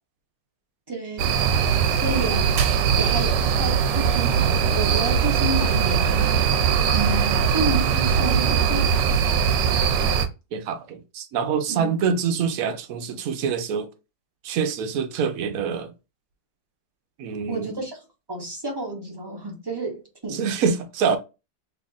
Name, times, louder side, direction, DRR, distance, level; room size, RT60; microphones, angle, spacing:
voice 1, 0.9-1.4 1.9-2.5 3.0-6.4 6.9-9.2 11.7-11.9 17.5-18.0 18.3-20.4, right 2 dB, 25° right, 0.5 m, -30 dB
sound 1, 1.2-10.3, right 7 dB, 80° right, 1.2 m, -21 dB
voice 2, 10.5-13.9 14.4-15.9 17.2-17.8 20.3-21.2, right 6 dB, 65° right, 0.9 m, -25 dB
3.3 x 2.4 x 3.8 m
omnidirectional pair, 1.9 m